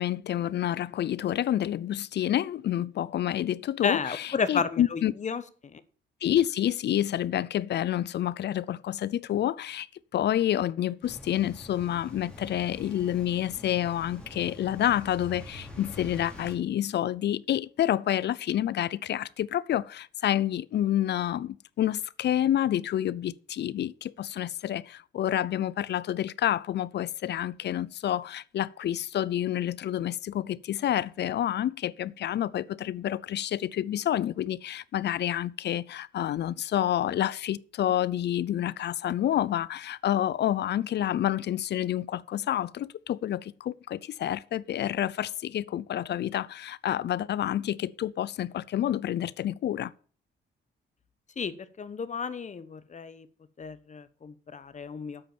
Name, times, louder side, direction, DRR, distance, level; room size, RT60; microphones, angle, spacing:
voice 1, 0.0-5.1 6.2-9.9 10.1-49.9, left 11 dB, 60° left, 0.5 m, -28 dB
voice 2, 3.8-5.8 51.4-53.3 53.6-55.2, left 5 dB, 35° left, 1.1 m, -32 dB
sound 1, 11.0-16.6, left 1 dB, 5° left, 3.6 m, -45 dB
8.6 x 7.8 x 7.1 m
cardioid pair, 90°, 20 cm